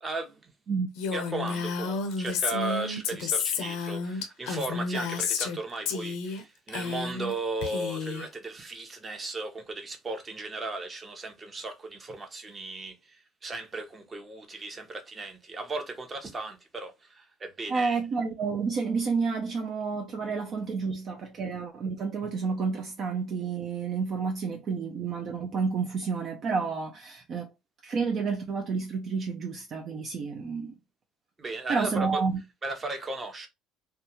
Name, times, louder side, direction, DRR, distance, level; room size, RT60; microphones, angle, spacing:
voice 1, 0.0-0.5 1.1-18.0 31.4-32.2 32.6-33.5, right 2 dB, 25° right, 0.8 m, -36 dB
Female speech woman speaking, 1.0-5.6 5.9-6.4 6.7-7.3 7.6-8.3, left 5 dB, 80° left, 0.6 m, -31 dB
voice 2, 17.7-27.5 27.8-30.8 31.7-32.4, right 5 dB, 50° right, 0.4 m, -30 dB
2.3 x 2.2 x 2.9 m
supercardioid pair, 100°, 0 cm